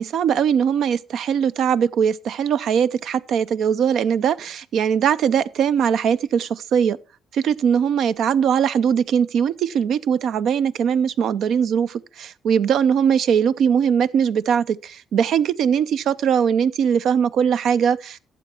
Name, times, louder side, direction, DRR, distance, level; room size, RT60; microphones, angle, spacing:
voice 1, 0.0-7.0 7.3-18.2, right 7 dB, 70° right, 0.5 m, -20 dB
12.5 x 7.9 x 4.4 m
cardioid pair, 90°, 0 cm